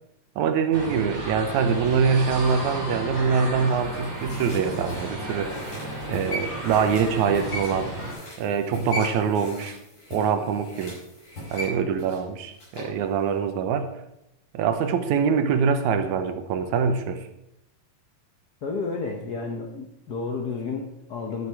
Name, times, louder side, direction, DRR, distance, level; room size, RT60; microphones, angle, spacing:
voice 1, 0.4-5.6 6.0-7.9 8.4-9.7 10.1-11.0 11.5-13.9 14.5-17.3, right 6 dB, 90° right, 8 dB, 2.3 m, -24 dB
sound 1, 0.7-8.1, right 1 dB, 20° right, 3.2 m, -33 dB
sound 2, 3.6-13.0 13.3-13.4, left 1 dB, 45° left, 5.8 m, -38 dB
voice 2, 18.6-21.5, left 4 dB, 80° left, 2 dB, 0.8 m, -31 dB
11.5 x 7.1 x 4.7 m, 0.84 s
omnidirectional pair, 3.3 m